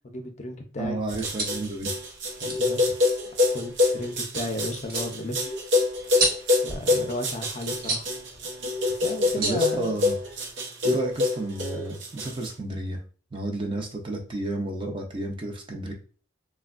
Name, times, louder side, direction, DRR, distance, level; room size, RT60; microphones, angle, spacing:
voice 1, 0.0-1.0 2.4-3.0 3.5-5.5 6.6-8.1 9.0-10.0, left 1 dB, 40° left, 4 dB, 0.5 m, -34 dB
voice 2, 0.8-1.9 9.4-10.1 10.8-13.0 13.3-15.9, right 1 dB, 30° right, 2 dB, 0.5 m, -31 dB
sound 1, 1.0-10.5, right 2 dB, 55° right, 0.9 m, -35 dB
sound 2, 1.1-12.5, left 3 dB, 80° right, 0.7 m, -25 dB
3.3 x 2.1 x 2.4 m, 0.40 s
head